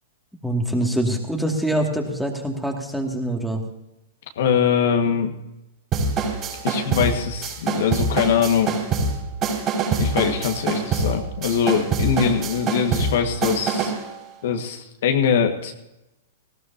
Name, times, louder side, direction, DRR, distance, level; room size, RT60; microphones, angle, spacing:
voice 1, 0.4-3.6, right 1 dB, ahead, 1 dB, 2.4 m, -24 dB
voice 2, 4.3-5.3 6.6-8.8 10.0-13.9 14.4-15.7, left 7 dB, 65° left, 4 dB, 1.8 m, -22 dB
sound 1, 5.9-14.1, right 4 dB, 30° right, 5.5 m, -25 dB
19.0 x 16.0 x 2.9 m, 0.91 s
hypercardioid pair, 115°, 0 cm